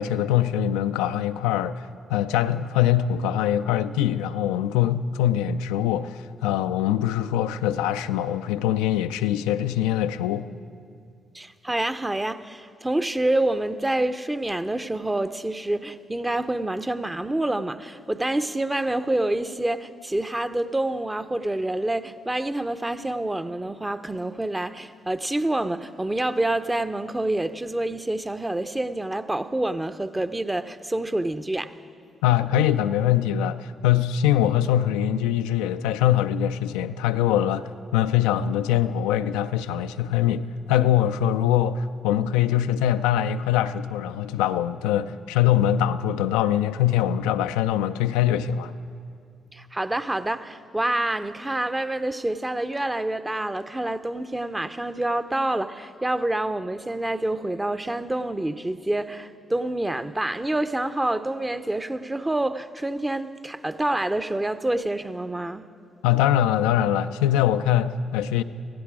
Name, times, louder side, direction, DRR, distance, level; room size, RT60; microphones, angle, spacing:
voice 1, 0.0-10.5 32.2-48.7 66.0-68.4, left 11 dB, 85° left, 0.3 m, -23 dB
voice 2, 11.3-31.7 49.5-65.6, right 1 dB, 15° right, 0.7 m, -27 dB
16.5 x 15.5 x 4.9 m
hypercardioid pair, 45°, 0 cm